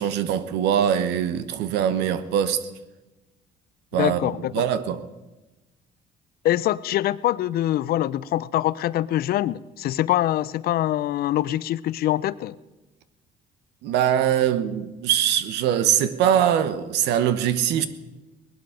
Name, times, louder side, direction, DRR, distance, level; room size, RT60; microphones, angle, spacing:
voice 1, 0.0-2.7 3.9-5.1 13.8-17.9, right 9 dB, 85° right, 1.0 m, -22 dB
voice 2, 3.9-4.6 6.4-12.6, left 13 dB, 65° left, 0.5 m, -24 dB
19.5 x 12.0 x 5.0 m
cardioid pair, 110°, 17 cm